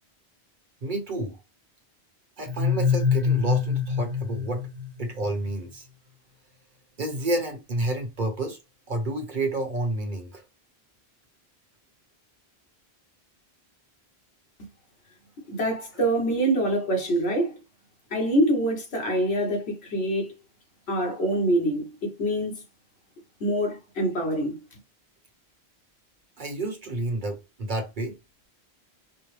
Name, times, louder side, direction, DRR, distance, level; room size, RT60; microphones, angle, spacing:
voice 1, 0.8-1.4 2.4-4.7 5.0-5.9 7.0-8.6 8.9-10.4 26.4-28.2, right 2 dB, 50° right, 1.1 m, -30 dB
sound 1, 2.5-5.3, left 6 dB, 25° right, 0.9 m, -25 dB
voice 2, 15.5-17.6 18.1-20.3 20.9-22.6 23.4-24.6, right 1 dB, 75° left, 1.4 m, -25 dB
5.3 x 2.1 x 3.2 m
omnidirectional pair, 1.1 m